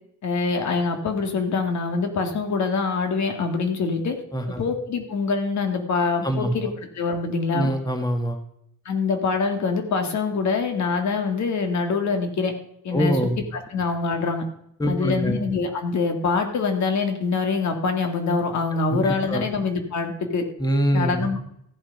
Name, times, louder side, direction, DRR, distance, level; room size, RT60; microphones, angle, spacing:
voice 1, 0.2-4.2 4.6-7.7 8.9-12.5 12.8-13.2 13.5-14.4 14.9-20.4 20.9-21.4, left 4 dB, 65° left, 5 dB, 2.0 m, -24 dB
voice 2, 4.3-4.6 6.2-6.5 7.5-8.4 12.9-13.4 14.8-15.4 18.9-19.5 20.6-21.2, equal, 15° left, 6 dB, 1.8 m, -24 dB
14.5 x 7.4 x 5.3 m, 0.74 s
cardioid pair, 90°, 30 cm